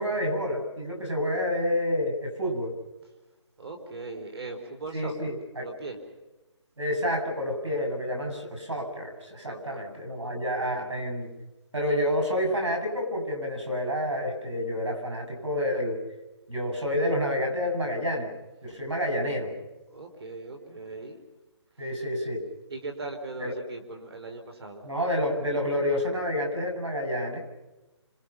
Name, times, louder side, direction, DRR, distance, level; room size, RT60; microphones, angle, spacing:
voice 1, 0.0-2.7 4.9-5.7 6.8-11.3 11.7-16.0 16.5-18.3 18.6-19.5 21.8-22.4 23.4-23.6 24.8-27.4, left 1 dB, 90° right, 4 dB, 7.4 m, -29 dB
voice 2, 3.6-6.0 9.4-9.8 10.2-11.0 19.9-21.2 21.8-21.9 22.7-24.8, right 3 dB, 55° right, 4 dB, 3.4 m, -40 dB
28.5 x 26.5 x 5.8 m, 1.1 s
figure-of-eight pair, 155°, 15 cm